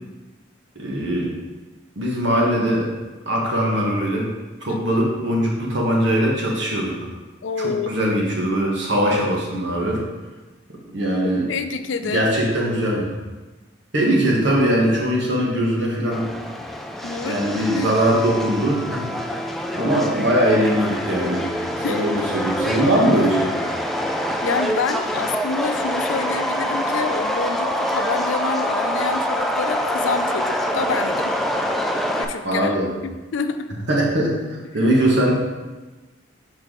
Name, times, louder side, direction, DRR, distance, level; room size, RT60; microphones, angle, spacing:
voice 1, 0.7-1.3 1.9-2.9 3.2-4.3 4.6-7.0 7.6-10.0 10.9-11.5 12.0-13.2 13.9-16.3 17.2-19.1 19.7-23.7 32.4-32.9 33.9-34.4 34.7-35.3, right 1 dB, 70° right, -2 dB, 1.4 m, -21 dB
voice 2, 4.7-5.0 7.4-7.9 11.2-12.3 17.0-17.9 21.8-22.2 24.4-31.4 31.8-32.8 33.0-33.7 35.2-35.3, left 5 dB, 80° left, 9 dB, 0.4 m, -28 dB
Subway metro underground, 16.1-32.2, equal, ahead, 0.3 m, -25 dB
6.4 x 4.4 x 3.8 m, 1.2 s
head